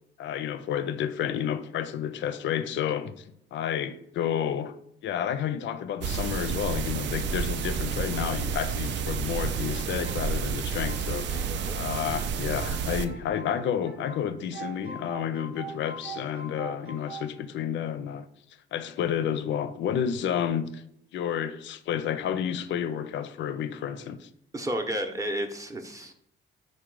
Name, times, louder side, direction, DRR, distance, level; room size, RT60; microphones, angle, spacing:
voice 1, 0.2-4.8 5.0-18.3 18.7-20.8 21.1-24.3, left 9 dB, 70° left, 0.4 m, -30 dB
sound 1, 6.0-13.0, right 6 dB, 65° right, 0.4 m, -30 dB
sound 2, 9.4-14.2 14.5-17.3, right 3 dB, 85° right, 0.8 m, -43 dB
voice 2, 11.3-11.8 24.5-26.2, right 1 dB, 15° right, 0.6 m, -32 dB
4.6 x 2.2 x 4.6 m
cardioid pair, 90°, 20 cm